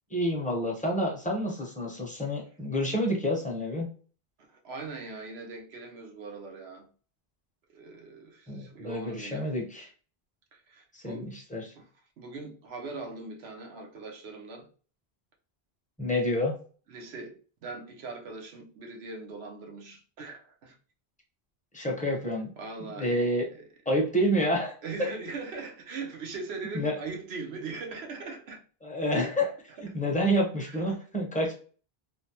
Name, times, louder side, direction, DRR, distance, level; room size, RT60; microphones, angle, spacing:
voice 1, 0.1-3.9 8.5-9.9 10.9-11.6 16.0-16.5 21.7-22.5 22.8-23.5 23.9-24.7 26.7-26.9 28.8-29.5 29.9-31.5, equal, 10° left, 0.6 m, -28 dB
voice 2, 4.5-6.9 7.7-9.5 10.5-11.3 11.7-11.9 12.2-14.7 16.9-20.8 22.6-23.2 23.5-23.7 24.8-28.6 29.9-30.0 30.6-31.0, right 3 dB, 85° right, 1.0 m, -40 dB
3.3 x 2.0 x 2.8 m
omnidirectional pair, 1.0 m